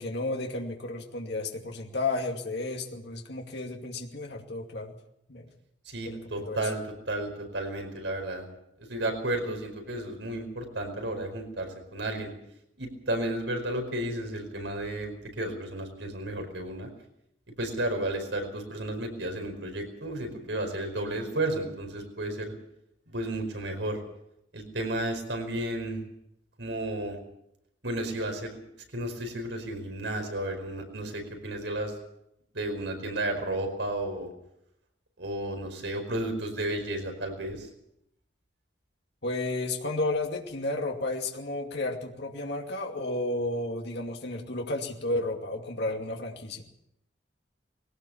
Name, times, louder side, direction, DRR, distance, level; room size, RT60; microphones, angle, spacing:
voice 1, 0.0-5.0 5.3-5.5 6.0-6.7 39.2-46.6, left 2 dB, 65° left, 1 dB, 2.5 m, -32 dB
voice 2, 5.8-6.8 7.1-8.5 8.9-12.3 12.8-16.9 17.6-22.5 23.1-24.0 24.5-26.0 26.6-27.2 27.8-28.6 28.9-31.9 32.5-34.3 35.2-37.7, right 1 dB, 90° right, 5 dB, 5.1 m, -32 dB
21.0 x 17.5 x 7.2 m, 0.79 s
head